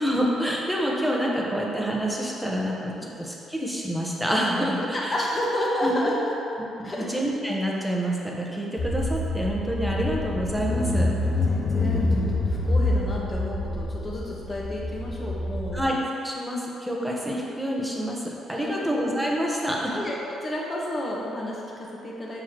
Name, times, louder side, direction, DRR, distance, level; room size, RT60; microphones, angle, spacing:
voice 1, 0.0-2.9 3.2-5.1 5.8-6.1 6.8-11.1 15.7-15.9 16.2-20.0, equal, 5° right, -3 dB, 1.0 m, -27 dB
voice 2, 4.9-7.1 11.5-15.8 16.9-17.0 18.7-18.9 19.9-22.4, left 1 dB, 30° left, -4 dB, 1.3 m, -31 dB
Car / Engine, 8.8-15.8, left 2 dB, 65° left, 1.0 m, -26 dB
7.4 x 4.6 x 3.1 m, 2.8 s
cardioid pair, 90°, 0 cm